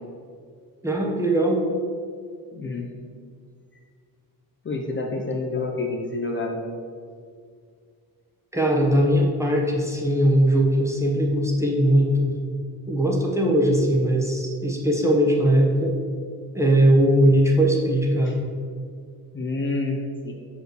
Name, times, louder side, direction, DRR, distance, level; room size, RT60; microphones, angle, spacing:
voice 1, 0.8-1.6 8.5-12.4 12.9-16.0 16.5-18.4, right 1 dB, 10° right, -1 dB, 1.0 m, -20 dB
voice 2, 2.5-2.9 4.6-6.6 18.2-18.3 19.3-20.3, left 3 dB, 30° left, 1 dB, 0.7 m, -28 dB
6.4 x 5.2 x 6.5 m, 2.1 s
wide cardioid pair, 160°, 38 cm